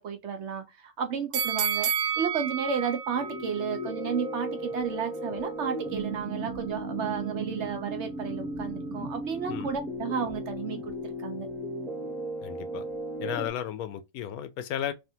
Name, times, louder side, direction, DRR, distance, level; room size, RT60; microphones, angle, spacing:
voice 1, 0.0-1.9 2.2-11.5, right 7 dB, 65° right, 0.8 m, -32 dB
sound 1, 1.3-4.4 4.8-4.9, right 8 dB, 80° right, 1.1 m, -31 dB
sound 2, 3.1-13.5, right 1 dB, ahead, 0.4 m, -35 dB
voice 2, 12.4-12.8 13.2-14.9, left 10 dB, 85° left, 1.1 m, -34 dB
3.4 x 2.5 x 2.7 m
omnidirectional pair, 1.5 m